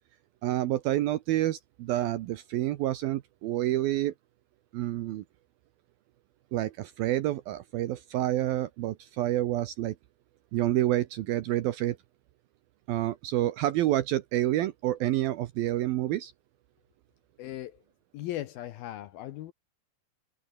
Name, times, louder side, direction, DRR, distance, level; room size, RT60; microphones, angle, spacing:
voice 1, 0.4-4.1 4.7-5.2 6.5-10.0 10.5-12.0 12.9-16.3, right 14 dB, 75° right, 2.3 m, -28 dB
voice 2, 17.4-17.7 18.1-19.5, left 13 dB, 75° left, 2.4 m, -37 dB
omnidirectional pair, 5.2 m